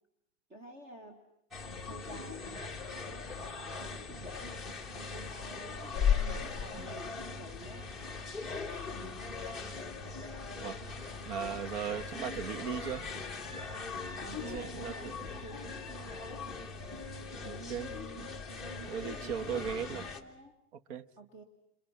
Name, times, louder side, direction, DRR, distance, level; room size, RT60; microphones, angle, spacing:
voice 1, 0.5-1.2 1.9-7.9 8.9-9.0 11.3-11.7 12.1-12.4 14.2-16.5 17.4-18.5 19.0-20.5 21.2-21.4, right 2 dB, 20° right, 4 dB, 2.0 m, -50 dB
sound 1, 1.5-20.2, left 5 dB, ahead, 1.8 m, -38 dB
voice 2, 8.9-9.2 10.6-10.8 11.2-13.1 14.4-15.2 17.4-17.9 18.9-20.0 20.9-21.1, right 8 dB, 60° right, 13 dB, 1.5 m, -38 dB
30.0 x 28.0 x 5.9 m, 0.81 s
supercardioid pair, 160°, 37 cm